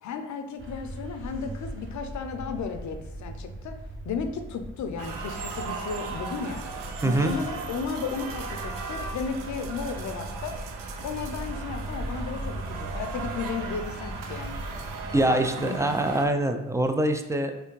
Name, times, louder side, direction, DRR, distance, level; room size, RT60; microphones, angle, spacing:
voice 1, 0.0-3.7 4.0-6.6 7.0-10.6 11.0-14.6 15.3-16.0, left 5 dB, 55° left, 7 dB, 0.5 m, -34 dB
sound 1, 0.6-15.2, right 1 dB, 35° right, 0.9 m, -39 dB
sound 2, 5.0-16.3, right 4 dB, 70° right, 0.6 m, -37 dB
voice 2, 7.0-7.3 15.1-17.6, right 1 dB, 10° right, 6 dB, 0.3 m, -24 dB
3.2 x 2.7 x 3.1 m, 0.95 s
supercardioid pair, 45°, 34 cm